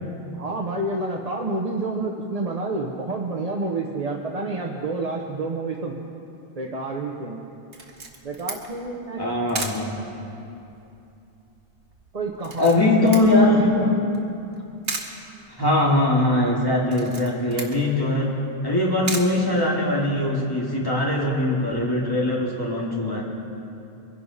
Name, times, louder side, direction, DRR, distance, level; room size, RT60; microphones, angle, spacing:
voice 1, 0.4-5.9 6.5-7.4 8.2-9.2 12.1-14.0, right 2 dB, 40° right, -1 dB, 1.0 m, -29 dB
Camera, 7.7-20.2, right 3 dB, 65° right, 1.6 m, -38 dB
voice 2, 9.2-9.9 12.6-13.7 15.6-18.3 18.6-23.2, left 1 dB, 20° left, -4 dB, 2.3 m, -21 dB
23.5 x 11.0 x 4.1 m, 2.8 s
omnidirectional pair, 1.1 m